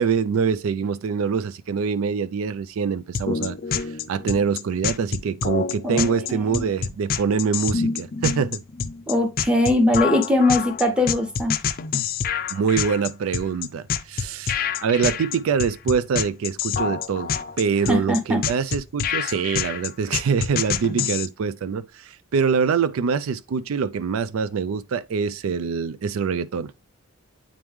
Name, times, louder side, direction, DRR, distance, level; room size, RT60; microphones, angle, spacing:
voice 1, 0.0-8.6 12.5-14.5 14.8-26.7, right 6 dB, 75° right, 0.4 m, -24 dB
sound 1, 3.1-21.3, left 7 dB, 45° left, 0.4 m, -27 dB
voice 2, 6.3-6.7 9.1-11.6 17.9-18.4, left 1 dB, 5° right, 1.0 m, -21 dB
8.6 x 3.1 x 3.5 m
head